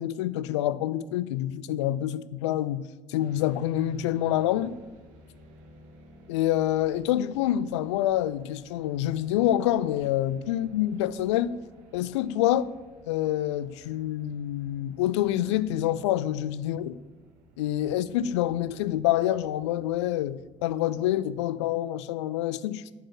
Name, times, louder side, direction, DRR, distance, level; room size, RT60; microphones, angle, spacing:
voice 1, 0.0-2.8 3.1-4.7 6.3-11.6 11.9-12.7 13.1-17.0 17.6-22.9, left 12 dB, 65° left, 0.4 m, -27 dB
sound 1, 3.2-21.5, right 1 dB, 60° right, 1.5 m, -54 dB
11.5 x 4.8 x 6.0 m
figure-of-eight pair, 55°, 16 cm